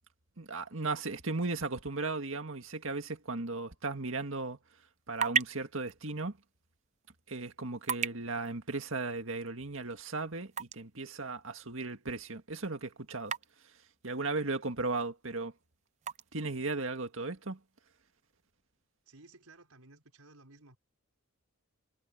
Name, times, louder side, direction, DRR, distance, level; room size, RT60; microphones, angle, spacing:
voice 1, 0.4-4.6 5.1-6.3 7.3-13.3 14.0-15.5 16.3-17.6, right 3 dB, 65° right, 2.1 m, -36 dB
sound 1, 4.7-18.5, right 6 dB, 30° right, 0.6 m, -42 dB
voice 2, 19.0-20.8, right 2 dB, 85° right, 4.9 m, -57 dB
head